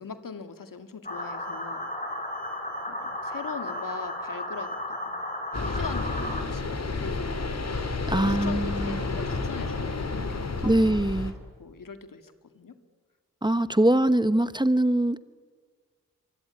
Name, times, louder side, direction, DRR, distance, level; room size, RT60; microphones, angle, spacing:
voice 1, 0.0-1.9 2.9-5.3 5.5-7.3 8.3-11.0 11.6-12.8, left 5 dB, 80° left, 9 dB, 2.2 m, -41 dB
sound 1, 1.0-6.4, left 1 dB, 25° left, 5.1 m, -34 dB
sound 2, 5.5-11.3, left 3 dB, 50° left, 3.1 m, -30 dB
voice 2, 8.1-9.0 10.6-11.3 13.4-15.2, right 1 dB, 15° right, 13 dB, 1.1 m, -23 dB
25.5 x 24.0 x 9.8 m, 1.5 s
wide cardioid pair, 75°, 33 cm